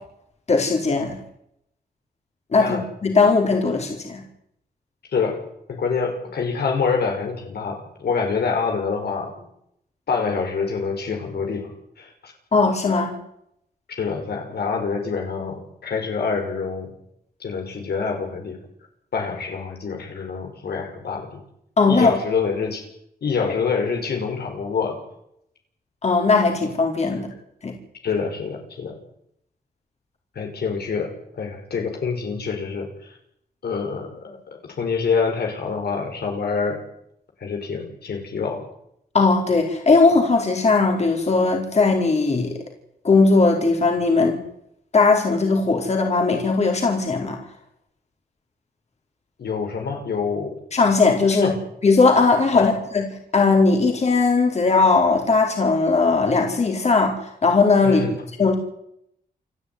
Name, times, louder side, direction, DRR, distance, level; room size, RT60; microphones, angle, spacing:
voice 1, 0.5-1.2 2.5-4.2 12.5-13.2 21.8-22.2 26.0-27.3 27.6-27.7 39.1-42.6 43.0-44.4 44.9-47.4 50.7-51.5 51.8-53.0 53.3-58.0 58.4-58.6, left 4 dB, 45° left, 1 dB, 4.2 m, -18 dB
voice 2, 5.1-5.4 5.7-9.5 10.1-11.7 12.0-12.3 13.9-16.9 17.4-18.6 19.1-21.4 21.9-22.8 23.2-25.0 28.0-29.0 30.3-33.2 33.6-34.4 34.7-36.8 37.4-38.7 49.4-50.6 51.4-51.6 52.5-52.7 57.8-58.2, left 5 dB, 80° left, 3 dB, 5.8 m, -26 dB
28.5 x 11.5 x 9.6 m, 0.75 s
wide cardioid pair, 145°, 16 cm